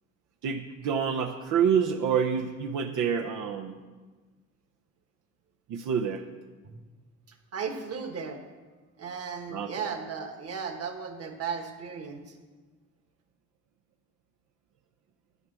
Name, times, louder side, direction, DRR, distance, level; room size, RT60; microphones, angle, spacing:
voice 1, 0.4-3.7 5.7-6.2 9.5-9.9, right 7 dB, 85° right, 2 dB, 0.7 m, -27 dB
voice 2, 7.5-8.4 9.0-12.2, right 6 dB, 55° right, 5 dB, 1.6 m, -35 dB
11.0 x 6.3 x 7.4 m, 1.3 s
cardioid pair, 90°, 30 cm